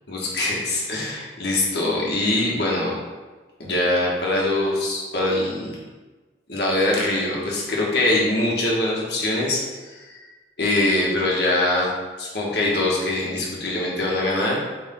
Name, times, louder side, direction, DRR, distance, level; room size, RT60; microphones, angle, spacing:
voice 1, 0.1-2.9 3.6-5.8 6.5-10.2 10.6-11.9 12.2-14.6, left 1 dB, 65° left, -3 dB, 1.7 m, -23 dB
8.0 x 3.7 x 3.8 m, 1.3 s
head